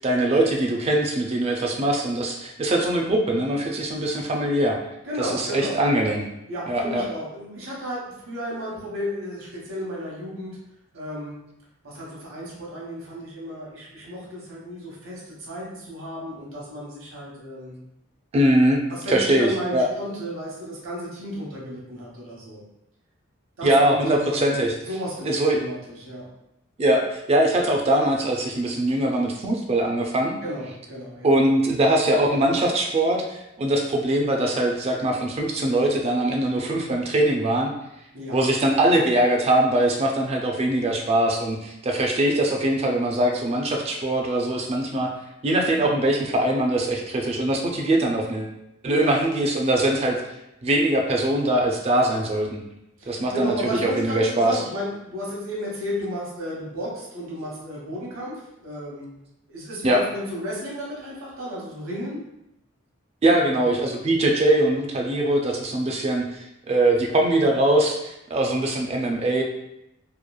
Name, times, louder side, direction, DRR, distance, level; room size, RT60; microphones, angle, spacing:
voice 1, 0.0-4.8 5.2-6.2 6.7-7.0 18.3-18.8 19.1-19.9 23.6-24.8 25.2-25.6 26.8-30.4 31.2-37.7 38.3-45.1 45.4-48.5 48.8-50.2 50.6-52.6 53.1-53.5 53.8-54.6 59.8-60.0 63.2-69.4, right 1 dB, 30° right, 1 dB, 0.4 m, -22 dB
voice 2, 5.0-5.8 6.5-10.6 10.9-11.3 11.8-17.8 18.9-22.6 23.6-24.5 24.9-26.3 30.4-31.3 38.1-38.4 48.8-49.2 53.0-58.3 58.6-59.1 59.5-62.2 63.3-63.6, equal, 80° right, -5 dB, 1.0 m, -33 dB
3.0 x 2.3 x 2.2 m, 0.85 s
head